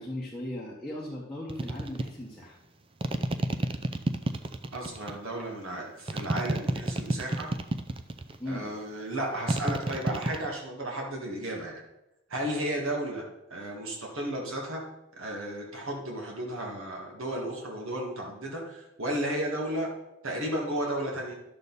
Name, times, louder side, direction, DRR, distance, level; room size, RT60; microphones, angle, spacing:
voice 1, 0.0-2.6 8.4-8.7, left 1 dB, ahead, -8 dB, 1.3 m, -37 dB
sound 1, 1.5-2.1 3.0-5.2 6.1-8.4 9.5-10.5, right 1 dB, 25° right, 0.4 m, -29 dB
voice 2, 4.7-7.5 8.4-11.8 12.3-14.8 15.2-19.9 20.2-21.3, right 1 dB, 65° right, -1 dB, 1.9 m, -33 dB
11.5 x 6.7 x 4.1 m, 0.91 s
head